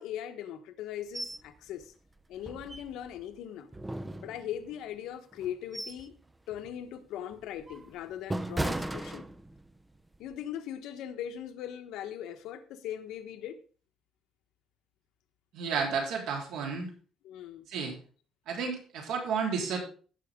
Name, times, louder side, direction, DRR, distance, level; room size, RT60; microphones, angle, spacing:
voice 1, 0.0-1.9 2.3-3.7 4.2-6.2 6.5-9.3 10.2-13.6 17.2-17.7, left 10 dB, 80° left, 1.2 m, -40 dB
sound 1, 1.1-1.5 1.8-1.9 2.4-3.2 3.7-4.7 5.3-6.1 6.5-6.8 7.3-9.8 10.1-10.4, right 1 dB, 10° right, 0.5 m, -37 dB
voice 2, 15.5-16.9 17.7-18.0 18.5-19.8, right 5 dB, 80° right, 3.9 m, -32 dB
16.5 x 6.2 x 3.7 m
cardioid pair, 155°, 0 cm